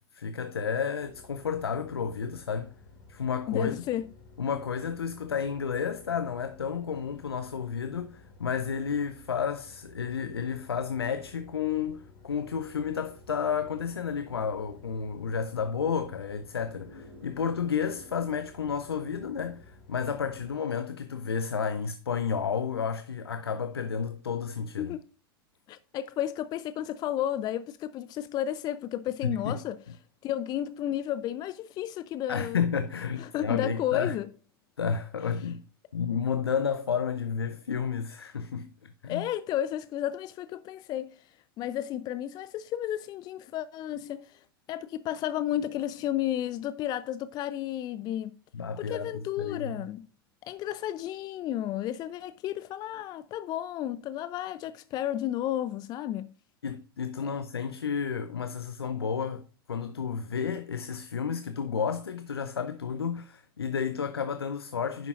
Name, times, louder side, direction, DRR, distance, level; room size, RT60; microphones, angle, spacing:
voice 1, 0.1-2.7 3.1-3.7 4.4-25.0 29.2-29.6 32.3-34.2 34.8-35.6 35.9-39.3 48.5-49.7 56.6-65.1, left 6 dB, 85° left, 0.6 m, -31 dB
sound 1, 1.0-20.5, left 3 dB, 60° left, 3.9 m, -54 dB
voice 2, 3.5-4.0 24.8-25.1 25.7-29.8 30.2-32.6 33.2-34.3 35.4-35.5 39.1-48.3 48.8-50.1 50.4-56.3 57.2-57.3, left 12 dB, 35° left, 0.5 m, -32 dB
sound 2, 13.8-18.4, left 1 dB, 60° right, 3.4 m, -54 dB
10.5 x 6.8 x 2.5 m
figure-of-eight pair, 95°, 13 cm